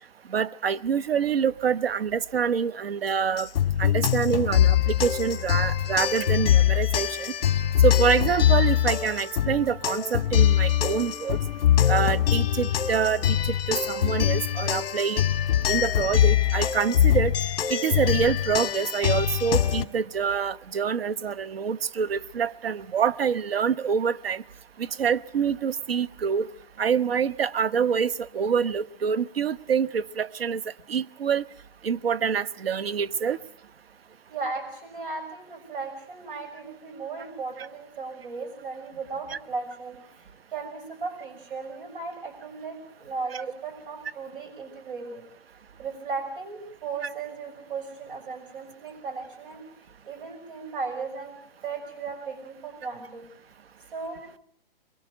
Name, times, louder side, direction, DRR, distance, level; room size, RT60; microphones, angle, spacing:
voice 1, 0.3-3.5 3.8-7.3 7.8-11.4 11.9-15.2 15.7-17.3 17.7-24.4 24.8-26.5 26.8-30.6 30.9-31.4 31.8-33.4 37.6-37.7 39.3-39.4, right 7 dB, 80° right, 1.0 m, -26 dB
sound 1, 3.4-19.8, left 10 dB, 45° left, 1.9 m, -23 dB
voice 2, 34.3-45.2 45.8-49.6 50.0-51.4 51.6-53.3 53.9-54.2, right 4 dB, 65° right, 6.5 m, -36 dB
23.0 x 23.0 x 7.9 m
hypercardioid pair, 160°, 29 cm